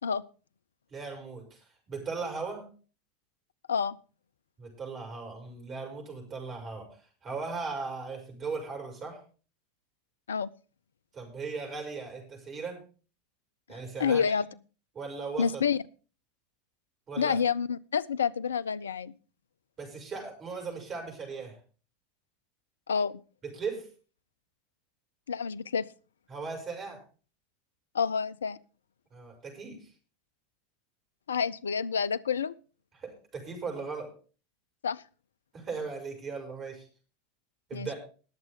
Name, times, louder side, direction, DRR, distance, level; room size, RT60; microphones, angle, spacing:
voice 1, 0.9-2.7 4.6-9.2 11.1-12.8 13.7-14.4 14.9-15.6 17.1-17.4 19.8-21.6 23.4-23.9 26.3-27.0 29.1-29.9 32.9-34.1 35.5-36.9 37.7-37.9, right 4 dB, 30° right, 3 dB, 6.5 m, -38 dB
voice 2, 13.7-14.5 15.4-15.8 17.2-19.1 22.9-23.2 25.3-25.9 27.9-28.6 31.3-32.5 34.8-35.0 37.7-37.9, left 6 dB, 75° left, 20 dB, 0.5 m, -28 dB
21.0 x 7.5 x 3.7 m, 0.37 s
figure-of-eight pair, 80°, 0 cm